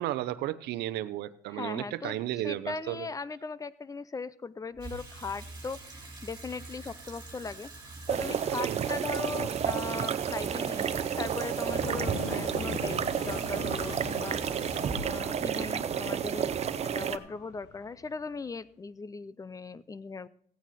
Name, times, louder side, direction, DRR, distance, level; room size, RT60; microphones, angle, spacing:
voice 1, 0.0-3.1 8.6-8.9 12.2-12.5, right 14 dB, 80° right, 13 dB, 0.7 m, -34 dB
voice 2, 1.5-2.1 2.4-14.4 14.9-16.5 16.8-20.3, left 4 dB, 20° left, 18 dB, 0.6 m, -39 dB
Water tap faucet / Sink (filling or washing), 4.7-17.1, right 2 dB, 25° right, 4.4 m, -45 dB
sound 1, 8.1-17.2, right 8 dB, 40° right, 0.7 m, -31 dB
sound 2, 11.7-18.5, left 7 dB, 90° left, 1.3 m, -43 dB
16.0 x 9.1 x 4.2 m, 0.64 s
cardioid pair, 110°, 17 cm